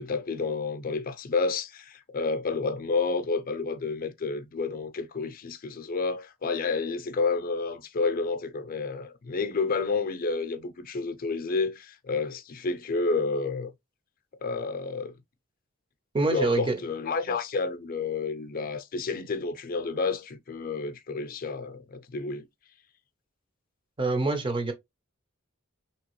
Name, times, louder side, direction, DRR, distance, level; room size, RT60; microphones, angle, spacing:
voice 1, 0.0-13.7 14.4-15.1 16.3-22.5, left 4 dB, 45° left, 0.5 m, -30 dB
voice 2, 16.1-16.7 24.0-24.7, right 3 dB, 25° right, 0.7 m, -25 dB
3.3 x 2.9 x 2.9 m
head